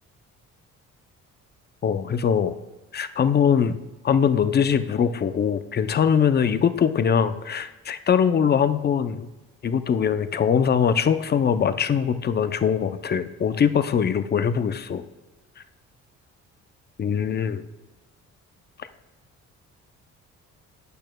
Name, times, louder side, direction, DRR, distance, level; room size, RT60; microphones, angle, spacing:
voice 1, 1.8-2.5 2.9-3.8 4.0-9.3 9.6-15.0 17.0-17.6, left 7 dB, 35° left, 11 dB, 0.5 m, -22 dB
12.0 x 8.6 x 2.2 m, 1.1 s
cardioid pair, 90°, 30 cm